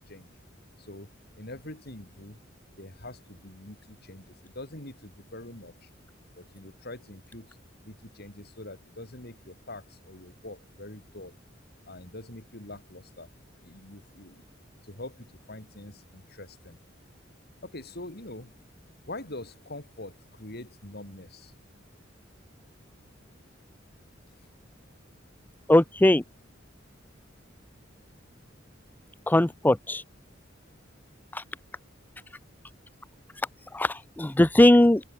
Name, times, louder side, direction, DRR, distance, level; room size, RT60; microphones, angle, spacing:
voice 1, 0.8-1.1 1.4-2.4 2.8-5.9 6.4-7.5 7.8-11.4 11.9-13.3 13.6-14.4 14.8-16.8 17.6-18.5 19.1-21.5, left 2 dB, 55° left, 5.6 m, -44 dB
voice 2, 25.7-26.2 29.3-30.0 33.7-35.0, left 1 dB, 10° left, 0.5 m, -19 dB
open air
head